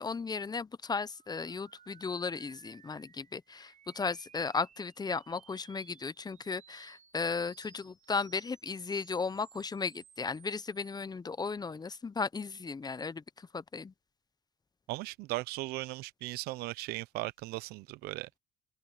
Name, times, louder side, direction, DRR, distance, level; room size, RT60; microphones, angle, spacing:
voice 1, 0.0-13.2 13.5-13.9, left 4 dB, 25° left, 0.9 m, -35 dB
sound 1, 1.1-11.0, right 8 dB, 50° right, 7.2 m, -60 dB
voice 2, 14.9-18.3, right 20 dB, 75° right, 0.8 m, -37 dB
supercardioid pair, 70°, 16 cm